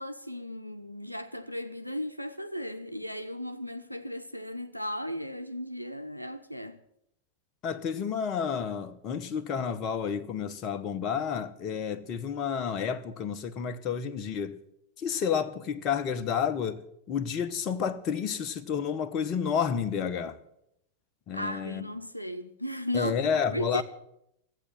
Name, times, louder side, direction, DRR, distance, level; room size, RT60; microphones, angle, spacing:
voice 1, 0.0-6.8 21.3-23.8, equal, 90° left, 0.7 m, -36 dB
voice 2, 7.6-14.6 15.0-16.8 17.1-20.4 21.3-21.9 22.9-23.8, left 7 dB, 35° left, 1.0 m, -30 dB
13.5 x 8.4 x 9.2 m
figure-of-eight pair, 90°, 0 cm